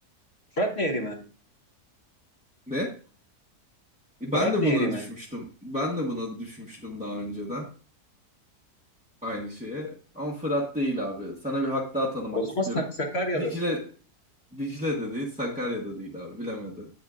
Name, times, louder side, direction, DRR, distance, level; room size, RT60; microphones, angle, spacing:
voice 1, 0.6-1.2 4.4-5.0 12.3-13.5, equal, 45° left, 2 dB, 1.4 m, -27 dB
voice 2, 4.2-7.7 9.2-12.8 13.3-13.8 14.5-16.9, left 1 dB, 5° right, -5 dB, 1.1 m, -31 dB
9.3 x 8.1 x 2.5 m, 0.39 s
omnidirectional pair, 1.7 m